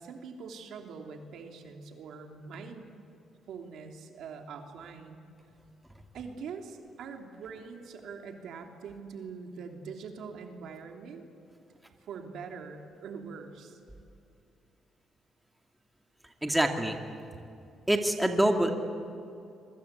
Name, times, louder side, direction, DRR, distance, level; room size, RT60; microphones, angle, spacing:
voice 1, 0.0-2.9 3.5-5.2 6.1-11.2 12.0-13.8, right 5 dB, 75° right, 4 dB, 3.1 m, -43 dB
voice 2, 16.4-17.0 17.9-18.7, right 1 dB, 5° right, 4 dB, 2.5 m, -25 dB
26.5 x 23.5 x 8.3 m, 2.6 s
cardioid pair, 90°, 0 cm